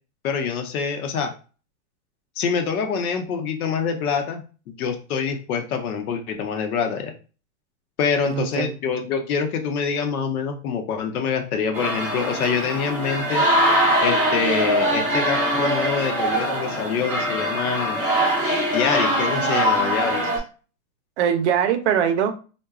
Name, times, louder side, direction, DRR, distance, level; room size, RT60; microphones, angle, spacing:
voice 1, 0.2-1.3 2.4-7.1 8.0-13.5 14.0-18.0 18.7-20.3, left 6 dB, 90° left, 6 dB, 0.8 m, -25 dB
voice 2, 8.2-8.8 21.2-22.3, right 8 dB, 55° right, 8 dB, 0.5 m, -22 dB
sound 1, 11.7-20.4, equal, 5° right, 0.5 m, -22 dB
3.9 x 2.2 x 2.3 m, 0.35 s
supercardioid pair, 170°, 43 cm